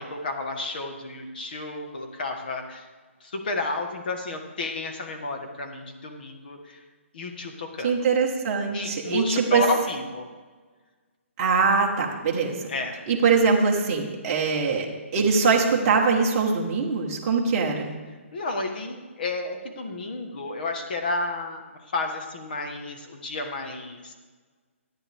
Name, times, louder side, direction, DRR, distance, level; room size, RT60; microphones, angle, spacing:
voice 1, 0.0-2.9 3.2-6.8 7.1-7.9 8.7-10.2 12.7-13.0 18.3-21.6 21.9-24.1, left 2 dB, 40° left, 4 dB, 1.4 m, -31 dB
voice 2, 7.8-9.6 11.4-12.7 13.1-14.9 15.1-17.9, right 5 dB, 20° right, -2 dB, 1.3 m, -22 dB
13.5 x 9.5 x 3.5 m, 1.4 s
hypercardioid pair, 175°, 7 cm